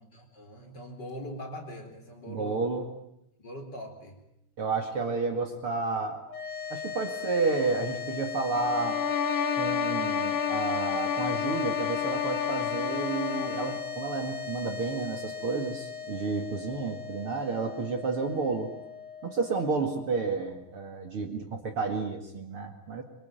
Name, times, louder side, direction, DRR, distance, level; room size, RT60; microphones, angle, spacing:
voice 1, 0.1-2.6 3.4-4.2, equal, 35° left, 3 dB, 4.7 m, -42 dB
voice 2, 2.3-2.9 4.6-6.2 6.7-9.0 9.5-18.7 19.2-23.0, right 4 dB, 45° right, 5 dB, 2.8 m, -31 dB
sound 1, 6.3-20.7, left 6 dB, 80° left, 4.7 m, -39 dB
sound 2, 8.5-13.9, left 8 dB, 60° left, 2.2 m, -30 dB
26.0 x 25.0 x 9.1 m, 0.81 s
omnidirectional pair, 3.5 m